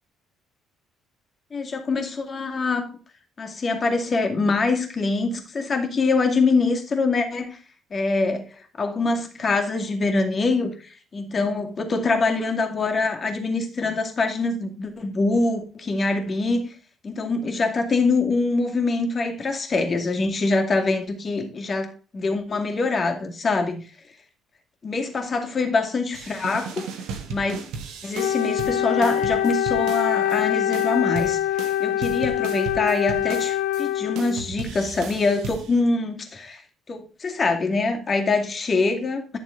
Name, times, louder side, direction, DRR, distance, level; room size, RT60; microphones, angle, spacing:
voice 1, 1.5-3.0 3.4-7.6 7.9-16.7 17.0-23.8 24.8-26.8 27.3-27.6 28.0-36.6 36.9-39.4, left 3 dB, 40° left, 2.4 m, -24 dB
sound 1, 26.1-30.4 30.7-33.8 34.2-35.8, right 5 dB, 65° right, 1.4 m, -36 dB
Wind instrument woodwind instrument, 28.1-34.5, left 11 dB, 65° left, 0.6 m, -24 dB
11.5 x 6.7 x 3.8 m
figure-of-eight pair, 45°, 0 cm